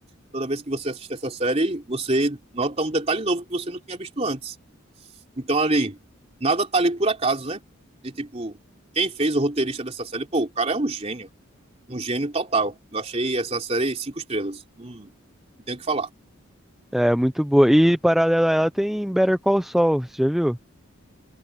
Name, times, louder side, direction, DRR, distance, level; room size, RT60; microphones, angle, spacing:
voice 1, 0.3-4.5 5.4-6.0 6.4-7.6 8.0-8.6 8.9-11.3 11.9-15.1 15.7-16.1, right 2 dB, 30° right, 3.1 m, -25 dB
voice 2, 16.9-20.6, equal, ahead, 0.5 m, -20 dB
head